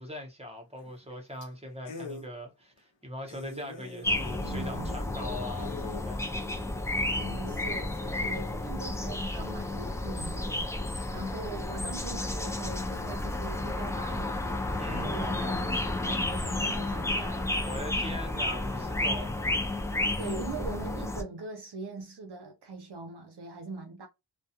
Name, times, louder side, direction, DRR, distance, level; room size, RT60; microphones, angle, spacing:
voice 1, 0.0-6.3 14.8-15.1 17.6-19.4, left 1 dB, 15° right, 0.8 m, -41 dB
sound 1, 0.8-1.1 1.4-1.5 1.8-2.3 2.8-2.9 3.3-6.1 6.6-6.7 7.1-7.8, left 3 dB, 75° left, 0.7 m, -44 dB
sound 2, 4.0-21.2, left 2 dB, 5° left, 0.3 m, -32 dB
voice 2, 4.4-5.0 7.2-10.8 11.1-14.4 14.9-17.7 20.2-24.1, right 4 dB, 60° right, 0.5 m, -41 dB
2.3 x 2.2 x 2.7 m
wide cardioid pair, 90°, 44 cm